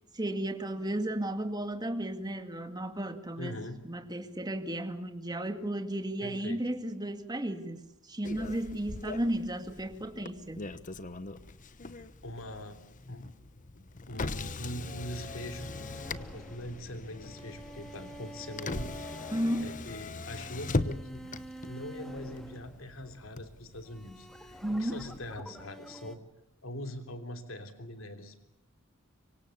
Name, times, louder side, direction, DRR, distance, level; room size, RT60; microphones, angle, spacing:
voice 1, 0.1-3.6 3.8-10.6 19.3-19.7 24.6-25.0, right 1 dB, 20° right, 7 dB, 2.0 m, -34 dB
voice 2, 3.4-3.8 6.2-6.6 12.0-12.8 13.1-13.3 13.7-15.9 16.2-18.9 19.6-21.3 21.7-26.2 26.6-28.4, left 1 dB, 75° left, 7 dB, 3.2 m, -42 dB
Motor vehicle (road), 8.2-25.4, left 3 dB, 40° left, 1.0 m, -40 dB
sound 1, 14.8-23.3 23.9-26.2, right 1 dB, ahead, 2.0 m, -48 dB
25.5 x 24.5 x 7.1 m, 0.81 s
head